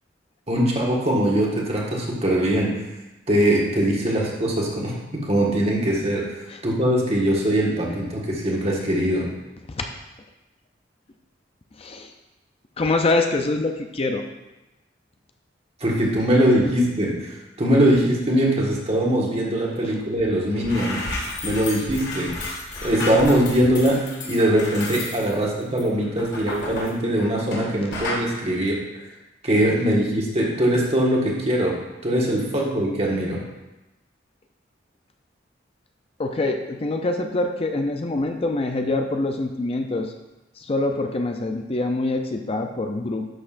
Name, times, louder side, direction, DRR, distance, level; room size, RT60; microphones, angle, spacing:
voice 1, 0.5-2.8 3.3-6.3 6.6-9.3 15.8-21.0 21.4-22.3 22.8-28.8 29.4-31.8 32.0-33.4, right 1 dB, 35° right, -2 dB, 1.5 m, -21 dB
voice 2, 11.8-12.1 12.8-14.2 19.8-19.9 36.2-40.1 40.6-43.3, left 2 dB, 35° left, 5 dB, 0.5 m, -25 dB
sound 1, 20.2-20.3 20.5-27.7 27.9-28.3, left 2 dB, 65° left, 1.9 m, -32 dB
11.0 x 6.5 x 2.5 m, 1.0 s
head